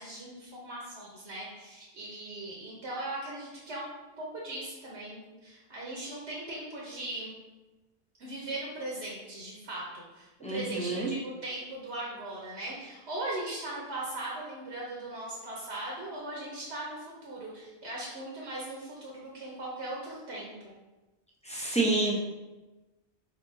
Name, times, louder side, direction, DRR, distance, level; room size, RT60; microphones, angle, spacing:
voice 1, 0.0-3.9 4.2-7.3 8.2-20.5 21.5-21.8, right 1 dB, 80° right, -4 dB, 1.2 m, -39 dB
voice 2, 10.4-11.1 21.5-22.1, right 2 dB, 10° left, -4 dB, 0.5 m, -28 dB
4.1 x 4.1 x 2.7 m, 1.1 s
omnidirectional pair, 1.1 m